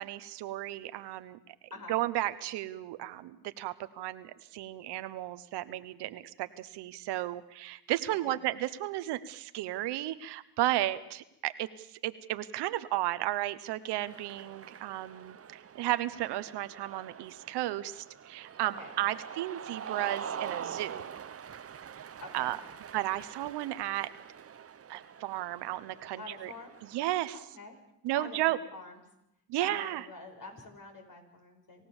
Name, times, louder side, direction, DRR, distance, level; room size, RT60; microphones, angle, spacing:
voice 1, 0.0-1.4 1.9-21.1 22.3-22.6 22.9-24.1 24.9-26.5 26.9-27.4 28.0-28.6 29.5-30.0, right 15 dB, 85° right, 13 dB, 1.1 m, -34 dB
Cheering, 13.9-27.3, right 8 dB, 35° right, 0.8 m, -44 dB
voice 2, 18.6-18.9 22.2-22.6 26.2-26.7 27.3-27.8 28.1-29.0 29.6-31.9, left 2 dB, 55° left, 3 dB, 6.7 m, -47 dB
27.0 x 15.5 x 7.2 m, 0.84 s
cardioid pair, 75°, 40 cm